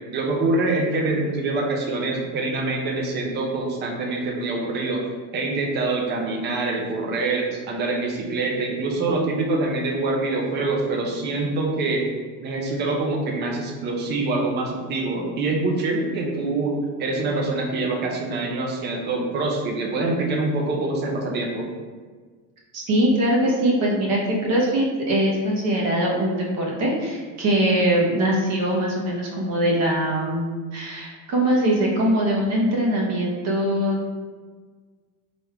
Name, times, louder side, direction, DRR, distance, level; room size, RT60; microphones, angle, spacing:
voice 1, 0.1-5.0 5.3-12.1 12.4-21.7, right 2 dB, 25° right, -1 dB, 0.6 m, -25 dB
voice 2, 22.7-34.1, right 1 dB, 45° right, -3 dB, 1.0 m, -22 dB
3.5 x 2.6 x 4.5 m, 1.5 s
cardioid pair, 155°, 38 cm